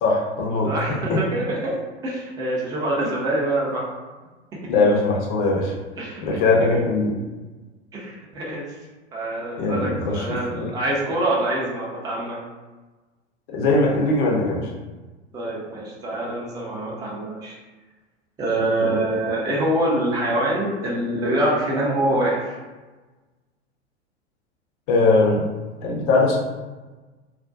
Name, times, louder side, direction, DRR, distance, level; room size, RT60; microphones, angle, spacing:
voice 1, 0.0-0.7 1.1-1.2 3.0-3.1 4.7-5.7 6.2-7.1 9.6-10.7 13.5-14.7 24.9-25.5 25.8-26.4, left 3 dB, 45° left, -2 dB, 0.7 m, -20 dB
voice 2, 0.6-1.8 2.0-3.9 6.0-6.2 6.7-6.8 7.9-8.7 9.1-12.4 15.3-17.5 18.4-22.6, right 1 dB, 10° right, -4 dB, 0.5 m, -25 dB
2.4 x 2.1 x 2.5 m, 1.2 s
figure-of-eight pair, 90°, 35 cm